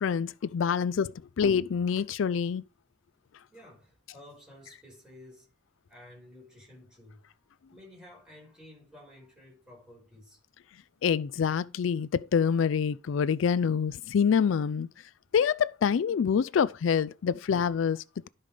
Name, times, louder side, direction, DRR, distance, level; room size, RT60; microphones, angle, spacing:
voice 1, 0.0-2.6 11.0-14.9 15.3-18.3, left 7 dB, 85° left, 0.4 m, -26 dB
voice 2, 3.5-5.5 5.9-7.4 7.7-10.4, left 1 dB, 5° right, 5.3 m, -52 dB
12.0 x 5.5 x 5.0 m
head